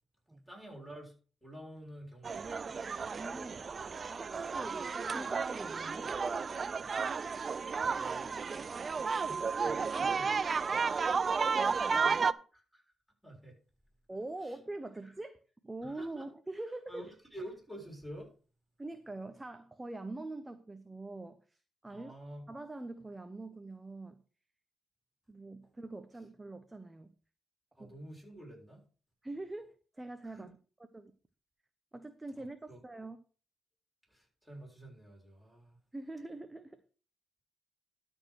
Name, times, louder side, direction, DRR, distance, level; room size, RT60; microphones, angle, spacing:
voice 1, 0.5-1.2 1.4-2.7 7.8-8.3 9.2-10.4 12.7-12.9 13.2-13.6 14.4-14.6 15.0-15.1 15.8-16.3 16.9-18.3 21.9-22.5 27.8-28.9 30.2-30.5 32.4-32.8 34.1-35.8, right 1 dB, ahead, -2 dB, 6.8 m, -49 dB
sound 1, 2.2-12.3, right 5 dB, 40° right, 0.4 m, -33 dB
voice 2, 3.1-3.7 4.2-4.8 5.1-6.2 11.3-12.4 14.1-15.4 15.6-17.0 18.8-22.1 22.5-24.2 25.3-27.1 27.8-27.9 29.2-30.5 30.9-31.1 31.9-33.2 35.9-36.8, right 2 dB, 15° right, 10 dB, 0.8 m, -44 dB
12.5 x 4.5 x 6.3 m, 0.38 s
cardioid pair, 90°, 0 cm